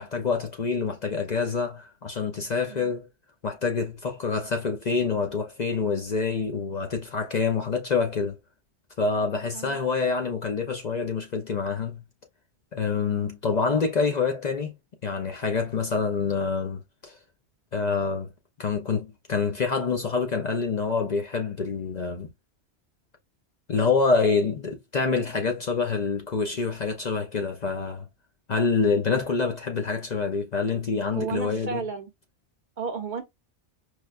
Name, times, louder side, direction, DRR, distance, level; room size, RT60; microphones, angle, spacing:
voice 1, 0.0-3.1 3.4-8.4 9.0-12.0 12.7-14.7 15.0-17.2 17.7-18.3 18.6-22.3 23.7-28.0 28.5-31.8, left 4 dB, 50° left, 0.6 m, -26 dB
voice 2, 31.1-32.1 32.8-33.2, right 5 dB, 50° right, 0.7 m, -33 dB
4.7 x 2.1 x 2.3 m
omnidirectional pair, 1.1 m